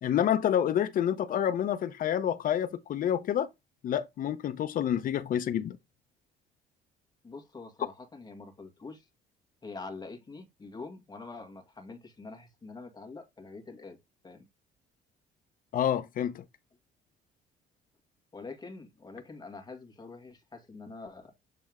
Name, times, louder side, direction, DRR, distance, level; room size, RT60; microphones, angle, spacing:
voice 1, 0.0-3.5 3.8-5.8 15.7-16.4, left 10 dB, 55° left, 0.7 m, -28 dB
voice 2, 7.2-9.1 9.6-14.0 14.2-14.5 18.3-21.3, left 3 dB, 25° left, 1.9 m, -45 dB
7.6 x 3.5 x 3.6 m
cardioid pair, 110°, 17 cm